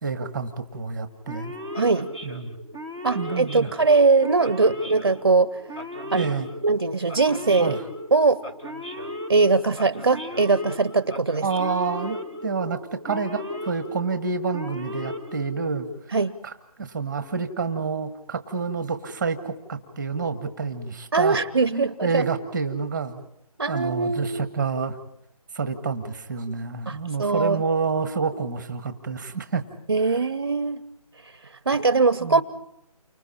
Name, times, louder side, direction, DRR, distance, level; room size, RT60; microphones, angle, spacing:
voice 1, 0.0-1.5 2.2-2.5 3.1-3.7 6.1-6.5 7.6-7.8 11.4-15.9 16.4-16.5 16.8-21.4 21.7-23.2 23.7-25.0 25.5-29.6 32.2-32.4, right 5 dB, 5° right, 9 dB, 1.3 m, -28 dB
Male speech man speaking / Siren, 1.3-16.0, left 1 dB, 10° left, 0.8 m, -37 dB
voice 2, 1.8-2.1 3.0-5.6 6.1-6.3 6.6-7.7 8.1-8.4 9.3-11.5 16.1-16.3 21.1-22.2 23.6-24.5 26.9-27.6 29.9-30.8 31.7-32.4, right 4 dB, 40° right, 15 dB, 0.7 m, -21 dB
29.5 x 25.0 x 4.3 m, 0.77 s
figure-of-eight pair, 170°, 19 cm